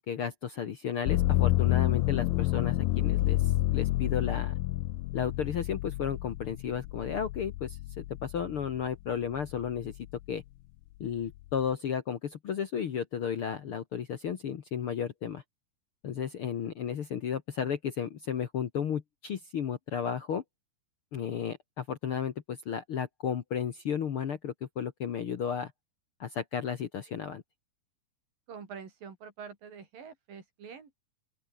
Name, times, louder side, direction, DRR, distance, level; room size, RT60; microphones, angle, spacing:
voice 1, 0.0-4.5 5.1-9.9 10.3-10.4 11.0-15.4 16.0-20.4 21.1-25.7 26.2-27.4, left 7 dB, 55° left, 1.6 m, -33 dB
sound 1, 1.1-8.9 9.4-10.2, left 18 dB, 80° left, 2.5 m, -29 dB
voice 2, 28.5-31.0, right 6 dB, 75° right, 5.7 m, -46 dB
open air
omnidirectional pair, 4.1 m